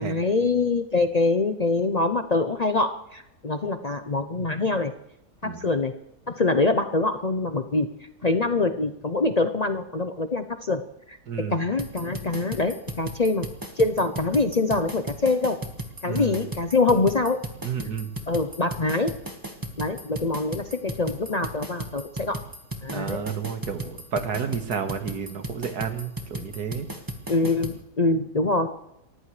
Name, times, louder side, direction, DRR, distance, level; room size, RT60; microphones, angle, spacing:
voice 1, 0.0-4.9 5.4-5.9 6.3-7.9 8.2-10.8 11.1-11.2 11.5-13.5 13.8-15.6 16.0-17.4 18.3-19.1 19.8-22.4 22.8-23.2 27.3-28.7, left 3 dB, 50° left, 8 dB, 0.4 m, -24 dB
voice 2, 11.3-11.6 16.1-16.4 17.6-18.1 22.9-26.9, right 6 dB, 70° right, 7 dB, 2.1 m, -31 dB
sound 1, 11.8-27.8, right 1 dB, 15° right, 1.5 m, -36 dB
30.0 x 14.5 x 3.3 m, 0.83 s
omnidirectional pair, 1.8 m